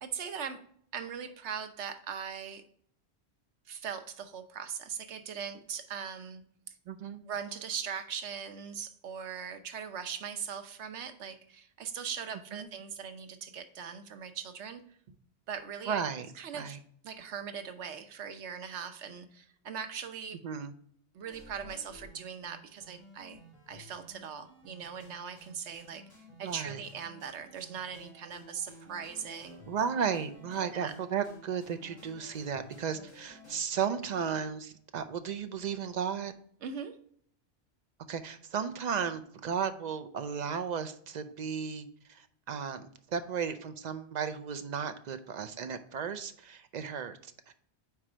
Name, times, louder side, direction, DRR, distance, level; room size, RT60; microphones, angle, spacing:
voice 1, 0.0-0.6 0.9-2.6 3.7-6.4 7.3-14.8 15.5-16.0 16.4-16.8 17.0-20.4 21.1-26.0 26.4-29.6 30.6-30.9 36.6-37.0, right 7 dB, 90° right, 8 dB, 1.0 m, -40 dB
voice 2, 6.9-7.2 12.5-12.7 15.9-16.3 16.5-16.8 20.4-20.7 26.4-26.8 29.7-36.3 38.1-47.5, right 7 dB, 55° right, 9 dB, 0.5 m, -34 dB
sound 1, 21.2-33.6, equal, 25° left, 2.1 m, -54 dB
4.7 x 4.3 x 4.9 m, 0.64 s
omnidirectional pair, 1.1 m